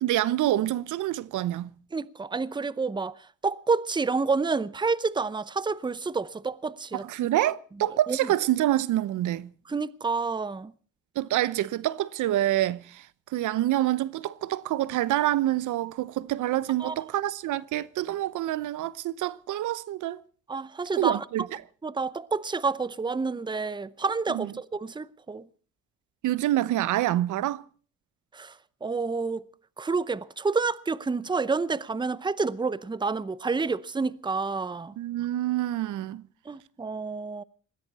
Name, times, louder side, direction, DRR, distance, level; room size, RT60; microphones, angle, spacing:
voice 1, 0.0-1.7 6.9-9.5 11.2-13.1 13.3-20.2 20.9-21.4 24.3-24.5 26.2-27.6 35.0-36.2, right 14 dB, 80° right, 0.8 m, -27 dB
voice 2, 1.9-3.1 3.4-7.0 8.1-8.2 9.7-10.7 16.8-17.0 20.5-21.2 21.8-25.4 28.3-28.5 28.8-29.4 29.8-34.9 36.5-37.4, right 4 dB, 15° right, 0.7 m, -29 dB
20.5 x 16.0 x 4.2 m
cardioid pair, 90°, 30 cm